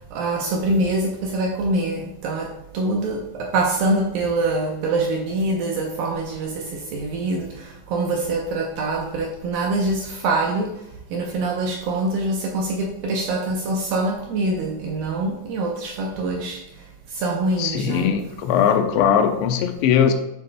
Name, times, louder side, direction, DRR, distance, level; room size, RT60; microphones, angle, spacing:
voice 1, 0.1-2.5 2.7-10.7 11.1-16.6 17.1-18.1, right 2 dB, 75° right, -1 dB, 2.2 m, -24 dB
voice 2, 17.6-20.1, left 8 dB, 85° left, 6 dB, 2.9 m, -19 dB
9.8 x 6.5 x 2.2 m, 0.88 s
omnidirectional pair, 5.0 m